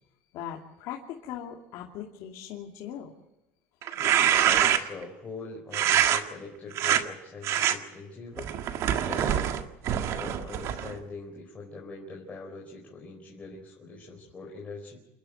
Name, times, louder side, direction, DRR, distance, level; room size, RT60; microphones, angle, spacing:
voice 1, 0.3-3.1, left 10 dB, 65° left, -1 dB, 2.7 m, -39 dB
sound 1, 3.8-5.0 5.7-6.2 6.7-7.0 7.4-7.7 8.4-11.0, right 10 dB, 55° right, 1.8 m, -25 dB
voice 2, 4.0-9.5 10.0-15.0, left 3 dB, 20° left, -1 dB, 4.5 m, -42 dB
29.0 x 11.5 x 9.0 m, 0.97 s
cardioid pair, 135°, 6 cm